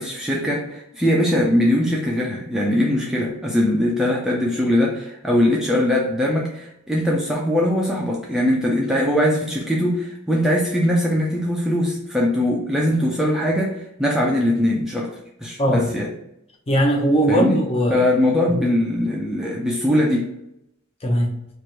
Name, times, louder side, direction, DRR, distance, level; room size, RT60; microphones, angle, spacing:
voice 1, 0.0-15.1 15.4-16.1 17.3-17.6 17.9-20.3, left 1 dB, ahead, -3 dB, 0.4 m, -21 dB
voice 2, 15.6-15.9 16.7-18.0 18.5-18.7 21.0-21.3, equal, 30° left, 0 dB, 0.7 m, -19 dB
3.1 x 2.5 x 4.4 m, 0.82 s
head